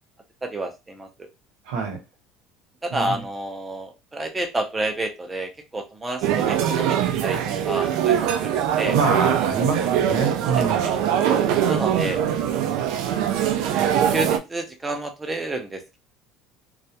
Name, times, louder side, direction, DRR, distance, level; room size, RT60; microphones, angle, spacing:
voice 1, 0.4-1.1 1.8-1.9 2.8-9.0 10.5-10.9 11.5-12.2 13.7-16.0, right 1 dB, 15° right, 4 dB, 0.5 m, -30 dB
voice 2, 1.7-2.0 2.9-3.2 8.9-10.9, right 5 dB, 85° right, 4 dB, 0.8 m, -25 dB
sound 1, 6.2-14.4, right 9 dB, 70° right, 0.4 m, -22 dB
2.2 x 2.0 x 2.8 m, 0.25 s
cardioid pair, 145°, 0 cm